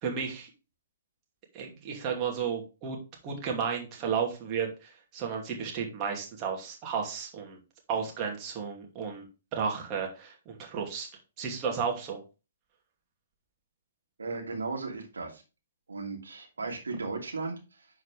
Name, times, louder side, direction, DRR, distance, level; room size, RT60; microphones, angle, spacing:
voice 1, 0.0-0.5 1.5-3.0 3.2-7.6 7.9-9.2 9.5-11.1 11.4-12.2, right 6 dB, 25° right, 0 dB, 2.7 m, -33 dB
voice 2, 14.2-15.4 15.9-17.9, right 3 dB, 70° right, 1 dB, 2.7 m, -36 dB
10.5 x 4.7 x 3.5 m, 0.31 s
figure-of-eight pair, 120°, 0 cm